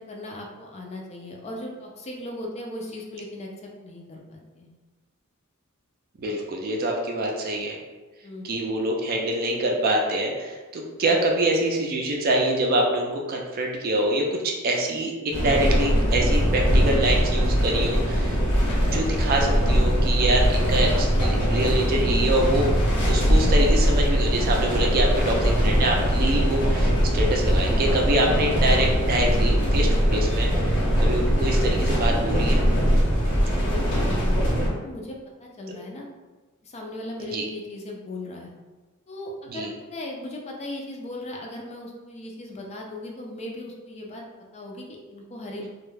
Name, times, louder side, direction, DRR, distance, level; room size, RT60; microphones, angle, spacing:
voice 1, 0.0-3.5 3.8-4.7 8.2-8.5 29.3-29.6 33.4-34.4 34.8-36.1 36.6-38.5 39.1-44.2 44.5-45.7, left 1 dB, 30° left, 0 dB, 0.3 m, -37 dB
voice 2, 6.2-7.8 8.4-18.4 18.8-22.7 23.1-32.6 37.2-37.4 39.5-39.7, right 1 dB, 45° right, 0 dB, 0.4 m, -25 dB
sound 1, 15.3-34.7, equal, 60° left, 0.7 m, -21 dB
2.2 x 2.1 x 3.1 m, 1.2 s
head